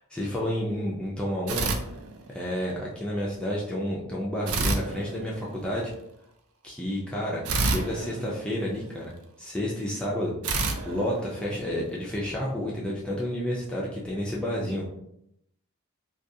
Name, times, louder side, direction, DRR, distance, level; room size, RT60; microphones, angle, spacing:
voice 1, 0.0-1.7 2.3-5.9 6.6-9.1 9.4-10.3 10.9-14.9, equal, 5° left, -5 dB, 0.3 m, -30 dB
sound 1, 1.5-2.6 4.5-5.8 7.4-9.1 10.4-12.0, right 3 dB, 70° right, 0.4 m, -30 dB
2.4 x 2.2 x 2.6 m, 0.77 s
head